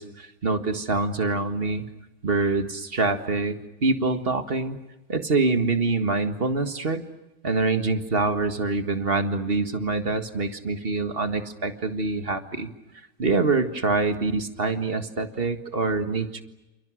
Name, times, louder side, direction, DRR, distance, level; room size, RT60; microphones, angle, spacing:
voice 1, 0.0-1.8 2.2-4.8 5.1-7.0 7.4-12.7 13.2-16.4, right 3 dB, 40° right, 8 dB, 1.9 m, -25 dB
29.0 x 28.5 x 6.4 m, 0.99 s
omnidirectional pair, 1.5 m